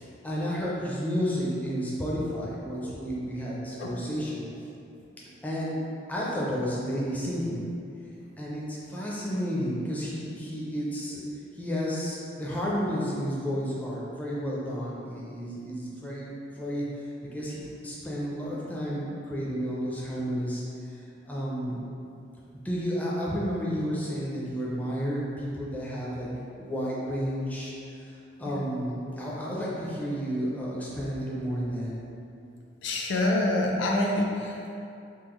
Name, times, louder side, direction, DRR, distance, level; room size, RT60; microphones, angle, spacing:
voice 1, 0.0-4.4 5.4-5.8 6.1-7.7 8.4-11.2 11.5-16.9 17.2-20.6 21.2-21.8 22.6-26.3 26.6-27.7 28.0-31.9, equal, 10° left, -6 dB, 0.4 m, -31 dB
voice 2, 32.8-34.8, left 1 dB, 70° left, -1 dB, 0.4 m, -27 dB
3.6 x 2.0 x 3.0 m, 2.6 s
head